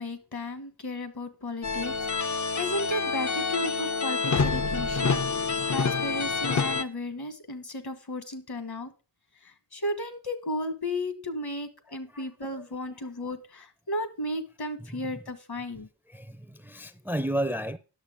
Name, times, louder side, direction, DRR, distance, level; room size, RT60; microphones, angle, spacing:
voice 1, 0.0-8.9 9.4-15.9, left 1 dB, 65° left, 1.4 m, -34 dB
sound 1, 1.6-6.8, left 4 dB, 45° left, 0.6 m, -27 dB
voice 2, 16.1-17.8, right 1 dB, 5° right, 0.5 m, -31 dB
10.0 x 6.6 x 4.9 m
wide cardioid pair, 65°, 41 cm